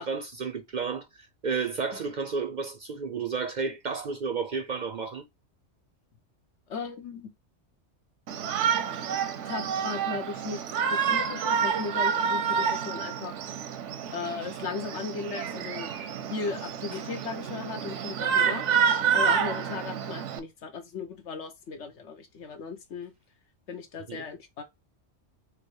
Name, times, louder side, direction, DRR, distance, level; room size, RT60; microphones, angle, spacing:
voice 1, 0.0-5.2 24.1-24.2, right 5 dB, 50° right, 0.5 m, -32 dB
voice 2, 6.7-7.3 9.4-13.3 14.1-16.0 16.3-23.1 23.7-24.6, left 5 dB, 80° left, 1.2 m, -37 dB
Shout, 8.3-20.4, right 7 dB, 85° right, 1.0 m, -28 dB
4.7 x 2.1 x 4.6 m
omnidirectional pair, 1.2 m